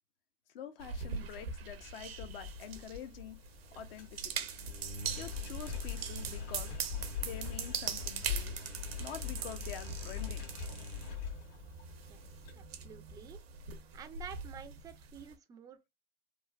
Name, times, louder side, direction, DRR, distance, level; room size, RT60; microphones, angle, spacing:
voice 1, 0.5-3.4 3.7-4.5 5.2-6.7 7.2-8.6 9.0-10.4, left 8 dB, 70° left, 0.6 m, -46 dB
sound 1, 0.8-15.3, right 6 dB, 80° right, 0.6 m, -42 dB
Engine, 1.6-12.5, left 6 dB, 50° left, 1.4 m, -42 dB
voice 2, 12.1-13.4 13.9-15.9, right 8 dB, 10° right, 0.3 m, -50 dB
3.1 x 2.1 x 2.3 m
hypercardioid pair, 100°, 30 cm